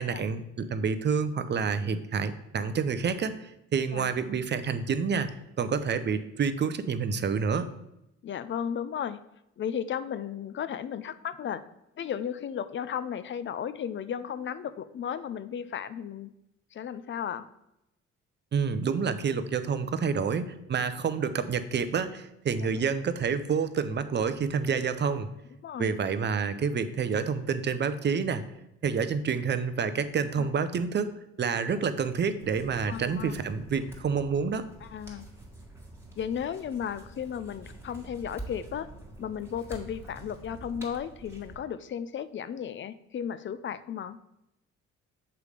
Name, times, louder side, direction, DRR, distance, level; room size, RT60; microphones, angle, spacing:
voice 1, 0.0-5.3 5.6-7.7 18.5-25.3 25.8-28.4 28.8-31.1 31.4-34.6, right 6 dB, 35° right, 11 dB, 0.5 m, -28 dB
voice 2, 8.2-9.2 9.6-11.6 12.0-16.3 16.7-17.5 22.6-22.8 25.6-25.9 30.4-30.5 32.9-33.3 34.8-35.3 36.2-38.9 39.2-44.2, left 8 dB, 40° left, 14 dB, 0.4 m, -34 dB
sound 1, 32.4-41.6, right 1 dB, 10° right, 1.6 m, -46 dB
6.8 x 3.2 x 5.0 m, 0.85 s
cardioid pair, 90°, 30 cm